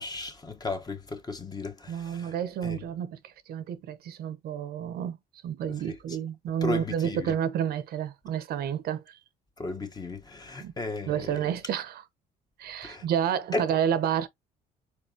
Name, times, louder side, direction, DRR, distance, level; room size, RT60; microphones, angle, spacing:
voice 1, 0.0-2.3 2.6-2.8 5.9-6.0 6.6-7.3 9.6-11.4 12.8-13.0 13.5-13.7, left 3 dB, 25° left, 1.2 m, -35 dB
voice 2, 1.9-5.2 5.4-9.2 10.6-10.7 11.1-12.0 12.6-14.3, right 9 dB, 65° right, 0.8 m, -30 dB
4.5 x 4.0 x 2.9 m
cardioid pair, 110°, 17 cm